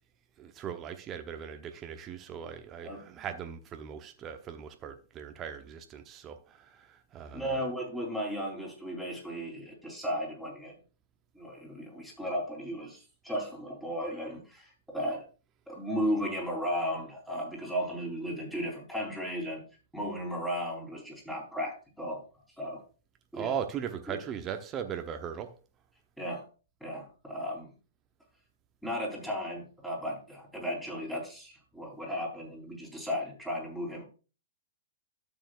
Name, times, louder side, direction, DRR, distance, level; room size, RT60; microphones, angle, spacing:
voice 1, 0.4-7.6 23.3-25.5, right 8 dB, 25° right, 0.9 m, -39 dB
voice 2, 7.3-10.8 11.3-15.3 15.7-19.6 19.9-22.2 22.6-22.8 23.3-23.5 24.1-24.2 26.2-26.5 26.8-27.7 28.8-34.0, equal, 5° left, 3.9 m, -35 dB
12.5 x 7.0 x 2.5 m
hypercardioid pair, 120°, 0 cm